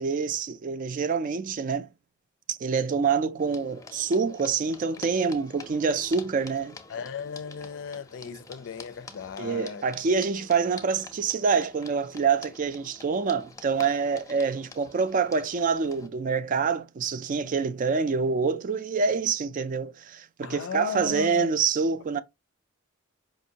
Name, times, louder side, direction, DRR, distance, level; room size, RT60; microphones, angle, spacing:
voice 1, 0.0-1.9 2.5-6.8 9.4-22.2, right 5 dB, 40° right, 0.3 m, -26 dB
sound 1, 3.4-16.1, left 3 dB, 15° left, 0.6 m, -47 dB
voice 2, 6.9-9.8 20.4-21.5, left 6 dB, 65° left, 0.4 m, -36 dB
5.1 x 2.6 x 2.7 m
head